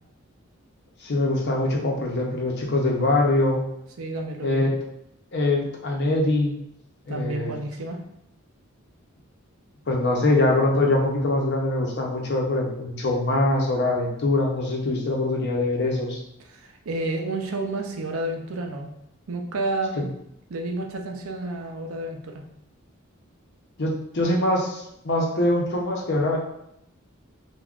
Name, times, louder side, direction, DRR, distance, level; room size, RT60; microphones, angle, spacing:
voice 1, 1.0-3.6 4.4-4.7 5.3-6.6 7.1-7.5 9.9-16.2 20.0-20.1 23.8-26.4, left 2 dB, 55° left, -1 dB, 0.6 m, -23 dB
voice 2, 4.0-4.7 7.1-8.0 16.4-18.9 19.3-20.1 20.5-22.4, right 2 dB, 80° right, 3 dB, 0.5 m, -30 dB
3.5 x 2.2 x 2.4 m, 0.78 s
head